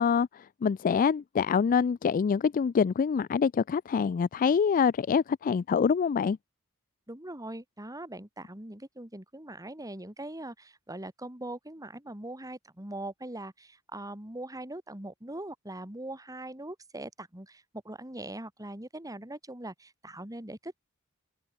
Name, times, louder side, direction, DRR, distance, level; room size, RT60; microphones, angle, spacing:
voice 1, 0.0-6.4, left 6 dB, 40° left, 0.3 m, -25 dB
voice 2, 7.1-20.8, right 1 dB, 15° right, 3.4 m, -41 dB
open air
head